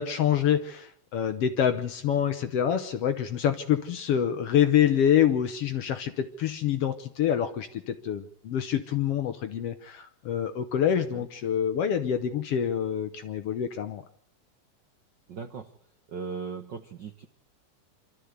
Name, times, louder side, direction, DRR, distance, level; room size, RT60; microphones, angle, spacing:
voice 1, 0.0-14.0, left 9 dB, 65° left, 9 dB, 1.6 m, -26 dB
voice 2, 15.3-15.7 16.1-17.3, right 5 dB, 70° right, 8 dB, 1.0 m, -38 dB
26.0 x 13.0 x 8.0 m, 0.64 s
omnidirectional pair, 3.5 m